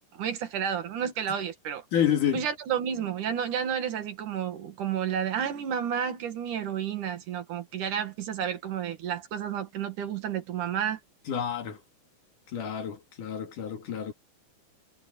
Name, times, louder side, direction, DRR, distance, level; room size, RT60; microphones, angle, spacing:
voice 1, 0.1-1.8 2.3-11.0, right 8 dB, 70° right, 3.3 m, -31 dB
voice 2, 1.9-2.4 11.3-11.8 12.5-14.1, left 9 dB, 70° left, 4.0 m, -29 dB
omnidirectional pair, 3.8 m